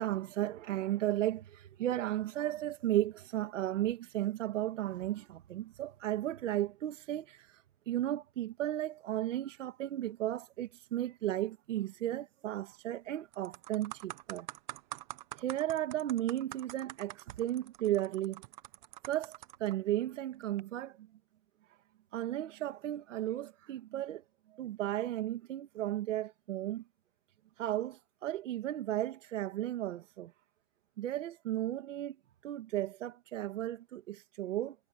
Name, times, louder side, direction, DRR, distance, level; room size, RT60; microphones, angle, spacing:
voice 1, 0.0-14.5 15.4-18.4 19.1-19.3 19.6-21.1 22.1-24.2 24.5-26.8 27.6-30.3 31.0-32.2 32.4-34.8, right 13 dB, 90° right, 1.8 m, -34 dB
sound 1, 12.7-13.0 13.3-19.7 20.4-20.6, right 17 dB, 40° right, 0.9 m, -46 dB
supercardioid pair, 175°, 36 cm